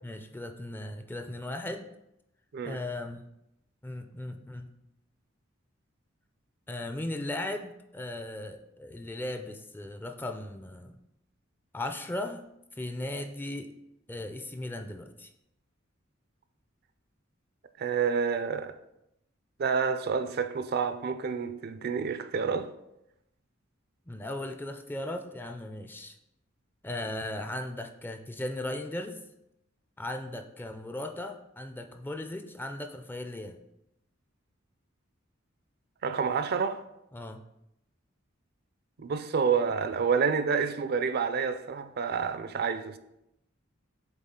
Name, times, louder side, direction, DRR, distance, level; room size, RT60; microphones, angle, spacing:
voice 1, 0.0-1.8 2.6-3.3 3.8-4.7 6.7-11.0 11.7-12.4 12.7-13.7 14.1-15.3 24.1-26.2 26.8-29.2 30.0-33.6 37.1-37.4, left 1 dB, 10° left, 0.4 m, -37 dB
voice 2, 17.8-18.8 19.6-22.7 36.0-36.8 39.0-43.0, right 6 dB, 55° right, 0.4 m, -28 dB
8.1 x 3.5 x 3.7 m
head